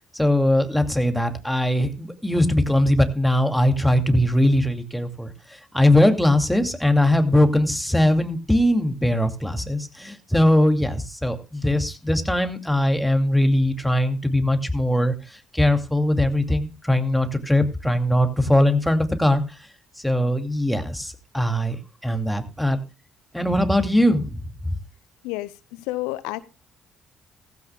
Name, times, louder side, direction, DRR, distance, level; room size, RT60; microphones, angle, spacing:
voice 1, 0.1-5.3 5.7-15.1 15.5-19.4 20.0-21.8 22.0-22.8 23.3-24.7, left 1 dB, 5° left, 2.4 m, -20 dB
voice 2, 25.2-26.4, left 19 dB, 75° left, 0.5 m, -30 dB
16.5 x 15.0 x 2.2 m
hypercardioid pair, 45°, 0 cm